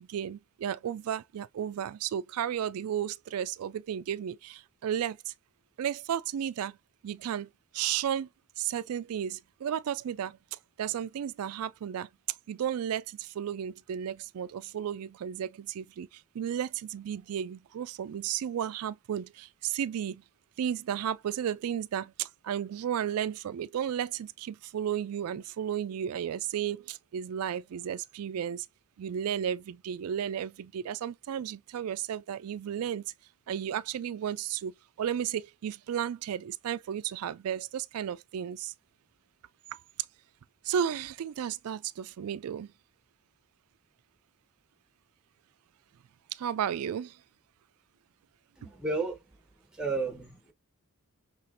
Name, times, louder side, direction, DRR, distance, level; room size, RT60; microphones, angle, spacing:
voice 1, 0.0-5.3 5.8-6.8 7.0-7.5 7.7-8.3 8.6-12.1 12.5-20.2 20.6-28.7 29.0-33.1 33.5-38.7 39.7-39.8 40.6-42.7 46.3-47.2, right 9 dB, 90° right, 0.3 m, -33 dB
voice 2, 48.6-49.2 49.8-50.5, right 3 dB, 5° right, 1.2 m, -32 dB
5.8 x 3.0 x 2.5 m
head